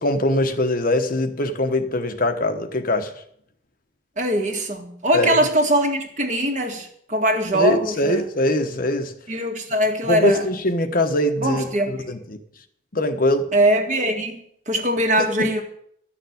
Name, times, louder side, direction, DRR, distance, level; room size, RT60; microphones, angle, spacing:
voice 1, 0.0-3.1 5.1-5.4 7.5-9.1 10.1-12.4 12.9-13.5 15.2-15.5, left 1 dB, 45° left, 7 dB, 1.1 m, -22 dB
voice 2, 4.2-8.2 9.3-10.5 11.4-12.1 13.5-15.6, right 1 dB, 40° right, 3 dB, 2.0 m, -22 dB
12.0 x 7.0 x 9.4 m, 0.67 s
head